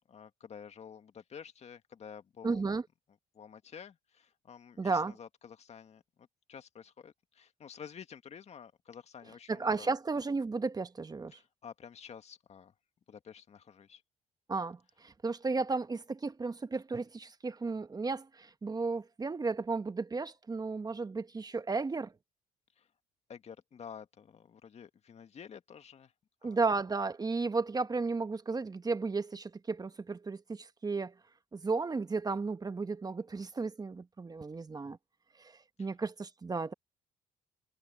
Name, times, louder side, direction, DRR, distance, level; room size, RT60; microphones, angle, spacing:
voice 1, 0.0-2.6 3.3-9.9 11.3-12.7 13.1-14.0 22.8-22.9 23.3-26.1 26.4-26.6 35.8-35.9, left 7 dB, 50° left, 2.0 m, -50 dB
voice 2, 2.4-2.8 4.8-5.1 9.5-11.3 14.5-22.1 26.4-31.1 31.5-35.0 35.4-35.5 35.8-36.7, right 4 dB, 25° right, 1.3 m, -34 dB
supercardioid pair, 65°, 15 cm